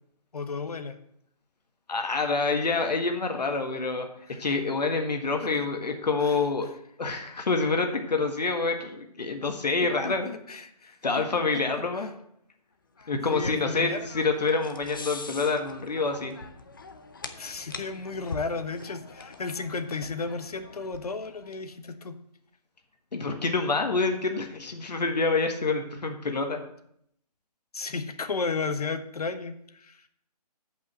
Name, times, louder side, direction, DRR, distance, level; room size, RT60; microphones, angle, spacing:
voice 1, 0.3-1.0 4.3-4.4 5.4-5.7 6.2-6.4 10.0-11.2 11.5-11.6 12.0-12.1 13.0-14.1 17.4-22.2 27.7-30.0, left 4 dB, 65° left, 10 dB, 1.2 m, -34 dB
voice 2, 1.9-4.1 4.4-6.7 7.0-10.3 11.0-12.1 13.1-16.4 23.1-26.6, left 3 dB, 85° left, 4 dB, 1.7 m, -27 dB
sound 1, 13.0-21.5, left 3 dB, 30° left, 0.7 m, -44 dB
8.1 x 5.5 x 7.5 m, 0.72 s
hypercardioid pair, 180°, 21 cm